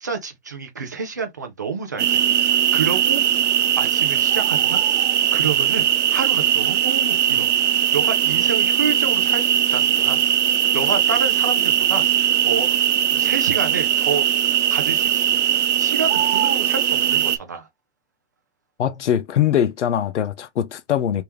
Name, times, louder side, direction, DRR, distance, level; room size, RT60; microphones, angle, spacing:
voice 1, 0.0-3.2 3.8-4.8 5.3-5.9 6.1-7.5 7.9-10.2 10.7-12.8 13.1-14.3 14.7-15.4 15.8-17.7, right 5 dB, 20° right, 0.3 m, -29 dB
sound 1, 2.0-17.4, right 10 dB, 85° right, 0.6 m, -19 dB
voice 2, 18.8-21.2, left 10 dB, 85° left, 0.7 m, -22 dB
3.3 x 2.9 x 3.3 m
hypercardioid pair, 155°, 34 cm